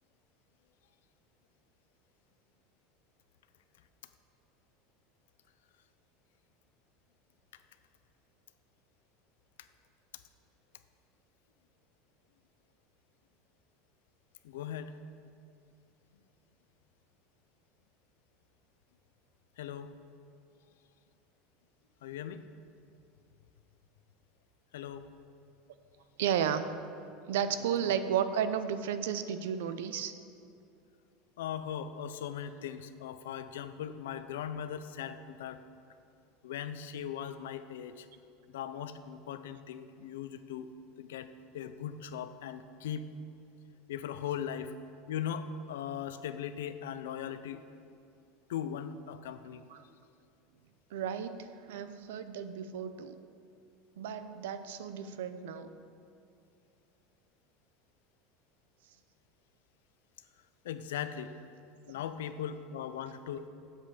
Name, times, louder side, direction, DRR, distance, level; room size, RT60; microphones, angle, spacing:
voice 1, 14.4-14.9 19.6-19.9 22.0-22.4 24.7-25.1 27.8-27.9 31.4-35.6 36.4-38.1 38.5-40.7 41.0-43.1 43.9-44.7 45.1-47.6 48.5-49.6 60.6-61.4 61.9-63.5, left 9 dB, 90° left, 11 dB, 0.5 m, -39 dB
voice 2, 26.2-26.7 27.3-30.1 49.7-49.8 50.9-53.2 54.0-55.7, right 8 dB, 85° right, 11 dB, 0.5 m, -33 dB
8.2 x 7.4 x 4.9 m, 2.6 s
supercardioid pair, 120°, 0 cm